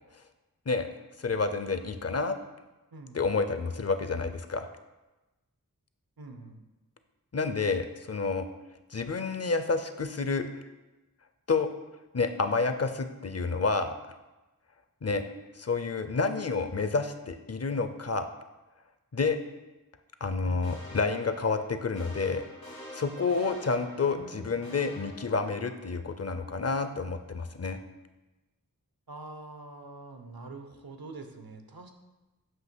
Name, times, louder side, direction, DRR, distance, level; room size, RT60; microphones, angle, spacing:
voice 1, 1.2-2.4 3.1-4.7 7.3-8.4 8.9-10.5 11.5-11.7 12.1-14.1 15.0-15.2 15.5-18.3 19.1-19.4 20.2-22.4 22.9-27.8, left 4 dB, 45° left, 9 dB, 0.5 m, -29 dB
voice 2, 2.9-3.2 6.2-6.6 20.4-20.8 24.1-24.9 29.1-31.9, right 2 dB, 80° right, 5 dB, 0.8 m, -45 dB
sound 1, 20.6-26.0, left 1 dB, 85° left, 2.1 m, -48 dB
7.7 x 2.9 x 6.0 m, 1.1 s
wide cardioid pair, 45°, 35 cm